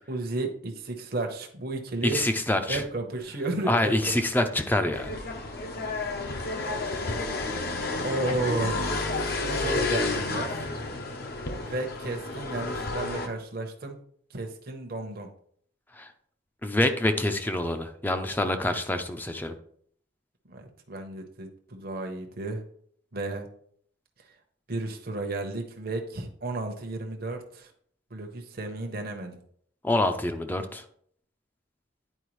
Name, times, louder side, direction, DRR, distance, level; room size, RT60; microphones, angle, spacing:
voice 1, 0.0-2.2 2.7-3.9 4.4-4.5 8.0-8.9 9.4-10.5 11.6-14.0 14.3-15.3 20.5-22.6 23.1-23.5 24.7-27.7 28.1-29.4, right 2 dB, 55° right, 3 dB, 0.9 m, -33 dB
voice 2, 2.0-2.8 3.7-5.1 15.9-16.1 16.6-19.5 29.8-30.8, left 1 dB, 10° left, 7 dB, 0.5 m, -26 dB
sound 1, 4.9-13.3, left 3 dB, 55° left, 0.8 m, -31 dB
9.9 x 4.5 x 3.1 m, 0.63 s
head